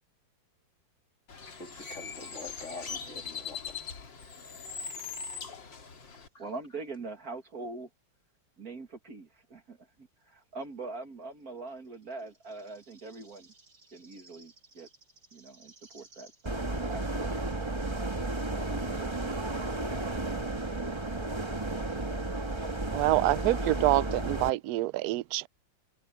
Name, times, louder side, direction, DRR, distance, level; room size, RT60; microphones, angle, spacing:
Bird, 1.3-6.3, left 6 dB, 75° left, 3.2 m, -41 dB
voice 1, 1.6-3.8 6.3-6.4, left 3 dB, 40° left, 3.2 m, -45 dB
voice 2, 6.4-7.9 8.6-15.0 15.3-16.6 16.9-17.7 18.7-19.5, right 3 dB, 50° right, 2.6 m, -43 dB
sound 1, 16.5-24.5, right 2 dB, 15° right, 1.4 m, -33 dB
voice 3, 22.9-25.5, right 18 dB, 70° right, 0.9 m, -26 dB
omnidirectional pair, 2.0 m